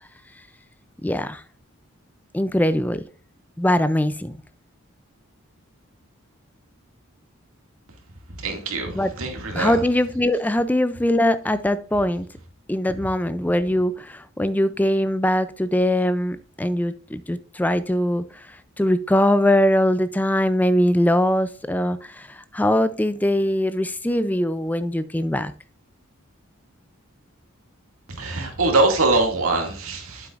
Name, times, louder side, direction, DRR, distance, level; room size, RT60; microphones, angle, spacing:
voice 1, 1.0-1.4 2.3-3.0 3.6-4.4 8.9-9.1 9.5-12.3 12.7-18.2 18.8-25.5, left 1 dB, 10° left, 0.3 m, -21 dB
voice 2, 8.4-9.8 28.1-30.3, right 2 dB, 80° right, 2.2 m, -23 dB
9.0 x 7.7 x 2.5 m
head